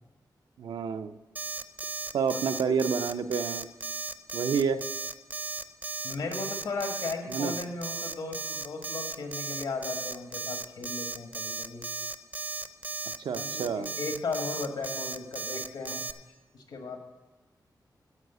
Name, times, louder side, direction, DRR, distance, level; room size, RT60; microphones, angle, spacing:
voice 1, 0.6-1.1 2.1-3.7 4.3-4.8 7.3-7.5 13.2-13.9, right 6 dB, 90° right, 8 dB, 0.5 m, -29 dB
Alarm, 1.4-16.1, right 3 dB, 20° right, 0.4 m, -35 dB
voice 2, 2.3-3.0 6.0-11.9 13.3-16.0 16.5-17.0, left 3 dB, 80° left, 4 dB, 1.5 m, -36 dB
12.5 x 4.9 x 8.0 m, 1.2 s
wide cardioid pair, 100°, 8 cm